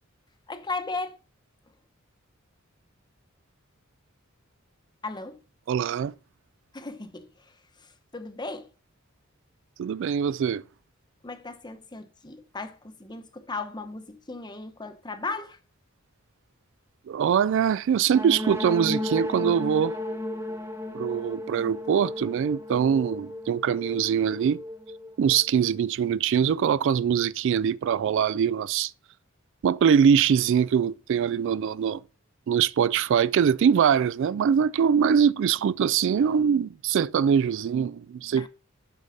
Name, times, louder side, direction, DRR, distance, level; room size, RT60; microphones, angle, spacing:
voice 1, 0.5-1.2 5.0-5.4 6.7-7.5 7.8-8.7 11.2-15.6 38.4-38.5, left 3 dB, 20° left, 0.8 m, -36 dB
voice 2, 5.7-6.1 9.8-10.6 17.1-19.9 20.9-24.6 25.2-28.9 29.6-32.0 32.5-38.5, right 7 dB, 60° right, 0.3 m, -23 dB
sound 1, 18.1-25.8, left 1 dB, 10° right, 0.7 m, -34 dB
8.3 x 5.3 x 4.1 m
head